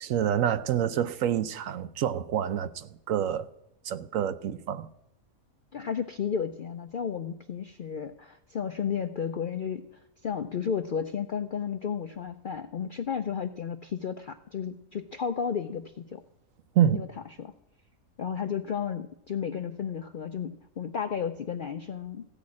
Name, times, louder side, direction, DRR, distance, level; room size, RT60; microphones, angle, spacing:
voice 1, 0.0-3.5 3.8-4.9 16.8-17.0, right 10 dB, 70° right, 1.0 m, -27 dB
voice 2, 5.7-16.2 16.9-17.1 17.4-17.5 18.2-22.3, left 7 dB, 65° left, 0.5 m, -33 dB
15.5 x 6.3 x 8.6 m
omnidirectional pair, 1.5 m